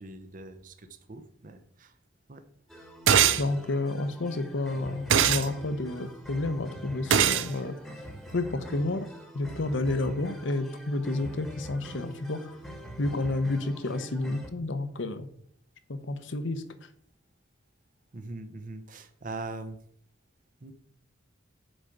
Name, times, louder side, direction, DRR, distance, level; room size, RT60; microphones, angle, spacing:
voice 1, 0.0-1.9 2.3-2.4 18.1-19.8 20.6-20.7, right 2 dB, 45° right, 10 dB, 0.8 m, -41 dB
sound 1, 2.7-14.5, equal, ahead, 1.2 m, -44 dB
sound 2, 3.1-3.4 5.1-5.5 7.1-7.5, right 8 dB, 80° right, 0.5 m, -21 dB
voice 2, 3.4-7.7 8.3-9.1 9.3-12.4 13.0-15.3 15.9-16.6, left 2 dB, 70° left, 10 dB, 0.8 m, -30 dB
6.2 x 4.9 x 6.4 m, 0.66 s
head